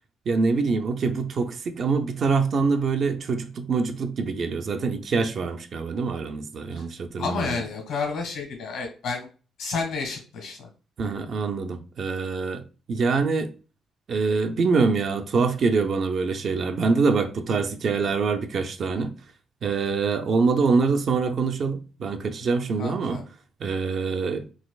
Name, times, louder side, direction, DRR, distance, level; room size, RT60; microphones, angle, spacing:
voice 1, 0.3-7.6 11.0-13.5 14.1-19.1 19.6-23.2 23.6-24.5, right 4 dB, 55° right, 0.4 m, -25 dB
voice 2, 7.2-9.3 9.6-10.7 22.8-23.2, left 4 dB, 85° left, 1.6 m, -30 dB
4.1 x 2.4 x 2.3 m
cardioid pair, 90°, 0 cm